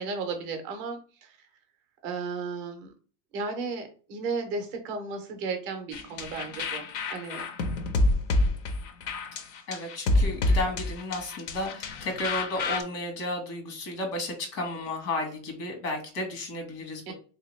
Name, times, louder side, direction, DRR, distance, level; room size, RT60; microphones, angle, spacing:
voice 1, 0.0-1.3 2.0-2.9 3.3-7.4 17.1-17.2, right 4 dB, 25° right, 5 dB, 0.4 m, -34 dB
sound 1, 5.9-12.8, left 2 dB, 45° left, 0.5 m, -28 dB
voice 2, 9.7-17.1, left 2 dB, 85° left, 3 dB, 1.4 m, -33 dB
3.3 x 2.8 x 3.0 m, 0.39 s
supercardioid pair, 175°, 49 cm